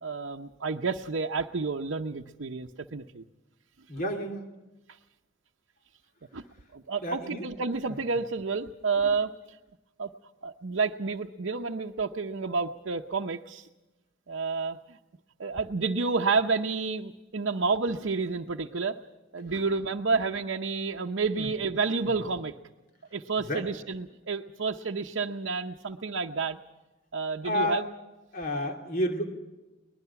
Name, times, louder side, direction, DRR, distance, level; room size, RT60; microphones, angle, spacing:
voice 1, 0.0-3.2 6.3-6.4 6.7-9.3 10.0-10.1 10.4-13.7 14.3-15.0 15.4-19.0 19.3-22.5 23.1-26.6 27.1-27.8, right 4 dB, 75° right, 1 dB, 0.8 m, -30 dB
voice 2, 3.9-4.4 7.0-7.4 21.4-21.5 23.5-23.6 27.4-27.8 28.3-29.3, left 1 dB, 45° left, 3 dB, 2.8 m, -30 dB
23.5 x 20.0 x 5.9 m, 1.1 s
head